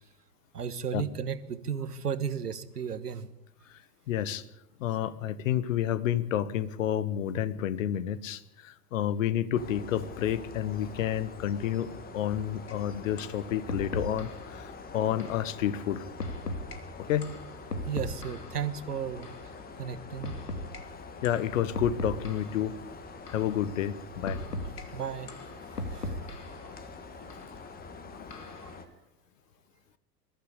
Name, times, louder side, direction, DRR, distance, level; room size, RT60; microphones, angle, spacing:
voice 1, 0.5-3.3 17.9-19.3 19.8-20.3 24.5-25.3 25.7-26.2 28.6-28.7, right 7 dB, 75° right, 13 dB, 1.5 m, -34 dB
voice 2, 4.1-4.4 4.8-14.3 14.6-16.0 17.1-17.3 21.2-22.7 23.3-24.4 28.1-28.3, left 10 dB, 55° left, 17 dB, 1.4 m, -30 dB
sound 1, 9.5-28.9, left 4 dB, 20° left, 1.9 m, -45 dB
sound 2, 12.7-12.8 13.2-13.4 13.7-14.4 15.2-15.4 16.2-16.8 17.2-18.6 19.2-19.4 20.2-20.8 21.2-21.4 21.7-22.6 23.3-23.5 24.3-24.8 25.3-26.6 27.3-27.5 28.3-28.7, left 1 dB, 75° left, 2.7 m, -37 dB
22.0 x 14.0 x 8.4 m, 0.84 s
figure-of-eight pair, 95°, 47 cm